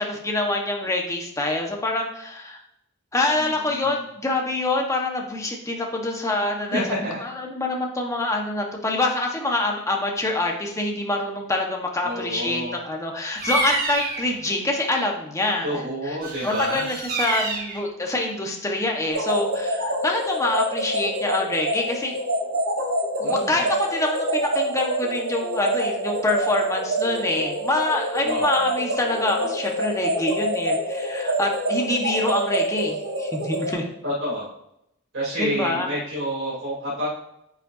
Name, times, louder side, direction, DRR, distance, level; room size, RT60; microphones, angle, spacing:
voice 1, 0.0-2.6 3.1-6.8 7.2-16.2 16.4-22.1 23.2-33.9 35.4-35.9, left 2 dB, 15° left, 0 dB, 1.3 m, -26 dB
voice 2, 3.4-4.0 6.7-7.2 12.0-12.8 15.6-16.9 23.2-23.6 28.2-28.5 34.0-34.5 35.1-37.1, equal, 60° right, -8 dB, 3.3 m, -29 dB
Bird vocalization bird call bird song, 13.4-14.3 16.2-17.8, right 2 dB, 45° right, 1.8 m, -28 dB
sound 1, 19.1-33.7, right 1 dB, 85° right, 3.3 m, -26 dB
9.6 x 7.9 x 2.8 m, 0.80 s
head